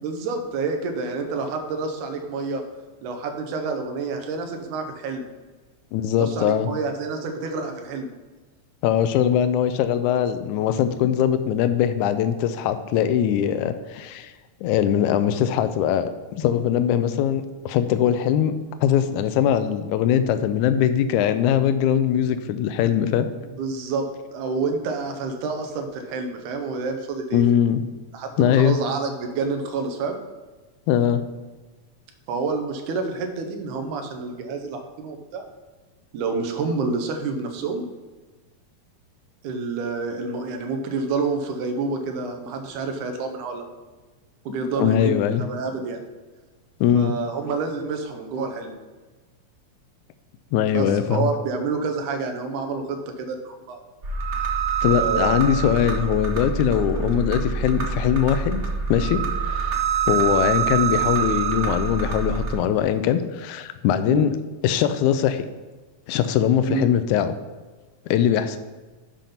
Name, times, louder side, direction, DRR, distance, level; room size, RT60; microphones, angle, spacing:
voice 1, 0.0-2.6 3.0-5.3 6.2-8.1 23.6-24.1 24.3-27.4 28.1-30.2 32.3-35.4 36.1-37.8 39.4-43.6 44.5-46.0 47.0-48.7 50.7-53.8 54.8-55.5 56.9-57.1 59.1-59.3 64.1-64.3 66.7-66.9, right 4 dB, 85° right, 4 dB, 2.4 m, -28 dB
voice 2, 5.9-6.7 8.8-14.3 14.6-18.5 18.8-23.3 27.3-27.8 28.4-28.8 30.9-31.2 44.6-45.4 46.8-47.1 50.5-51.3 54.8-58.6 58.9-59.8 60.1-64.3 64.6-65.5 66.1-67.3 68.1-68.6, left 9 dB, 80° left, 10 dB, 2.0 m, -21 dB
sound 1, 54.0-62.5, right 6 dB, 55° right, 0.9 m, -25 dB
7.6 x 5.2 x 5.7 m, 1.3 s
omnidirectional pair, 3.5 m